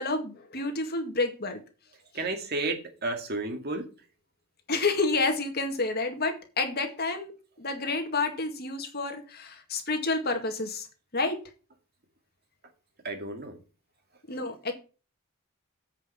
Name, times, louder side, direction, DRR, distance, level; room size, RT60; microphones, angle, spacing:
voice 1, 0.0-1.6 4.7-7.3 7.6-10.9 11.1-11.4 14.3-14.7, left 3 dB, 50° left, 5 dB, 2.0 m, -29 dB
voice 2, 2.1-3.9 13.0-13.6, right 2 dB, 50° right, 5 dB, 2.0 m, -32 dB
8.2 x 5.5 x 6.8 m, 0.34 s
head